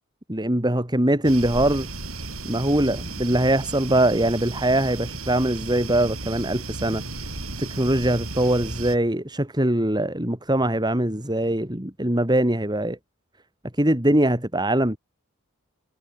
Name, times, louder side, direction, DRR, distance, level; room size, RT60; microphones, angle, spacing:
voice 1, 0.3-1.9 2.4-7.0 7.6-13.0 13.7-15.0, right 1 dB, 20° right, 2.8 m, -22 dB
sound 1, 1.2-9.0, right 2 dB, 90° right, 7.7 m, -34 dB
head